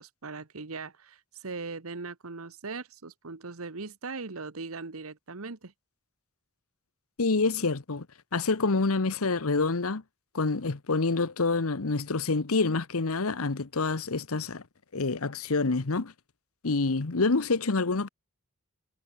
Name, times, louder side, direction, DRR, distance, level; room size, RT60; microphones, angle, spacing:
voice 1, 0.0-5.7, right 4 dB, 70° right, 1.3 m, -39 dB
voice 2, 7.2-8.1 8.3-10.0 10.3-14.6 14.9-16.1 16.6-18.1, left 3 dB, 75° left, 1.1 m, -27 dB
head